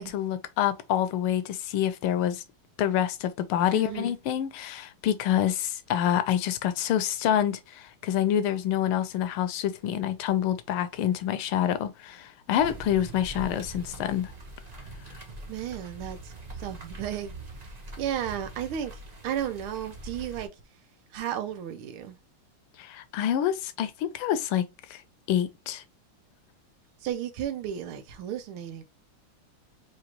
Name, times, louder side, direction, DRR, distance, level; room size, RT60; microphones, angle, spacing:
voice 1, 0.0-2.4 2.8-14.3 22.8-25.0 25.3-25.8, left 10 dB, 85° left, 1.5 m, -27 dB
voice 2, 3.7-4.1 15.5-16.3 16.6-17.4 18.0-20.5 21.1-22.2 27.0-28.8, right 10 dB, 85° right, 1.6 m, -33 dB
sound 1, 12.6-20.5, right 2 dB, 45° right, 0.5 m, -43 dB
4.8 x 3.0 x 2.9 m
omnidirectional pair, 2.3 m